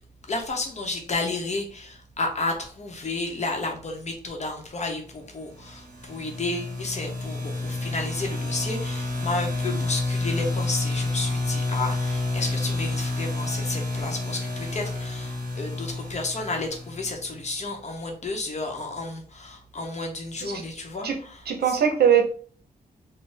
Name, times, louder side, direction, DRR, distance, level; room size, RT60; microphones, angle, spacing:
voice 1, 0.3-21.8, left 2 dB, 45° left, 3 dB, 0.9 m, -32 dB
sound 1, 5.6-17.4, left 2 dB, 55° right, 1.5 m, -29 dB
voice 2, 21.5-22.3, right 8 dB, 80° right, 4 dB, 0.8 m, -21 dB
4.3 x 2.2 x 3.4 m, 0.44 s
wide cardioid pair, 135°, 16 cm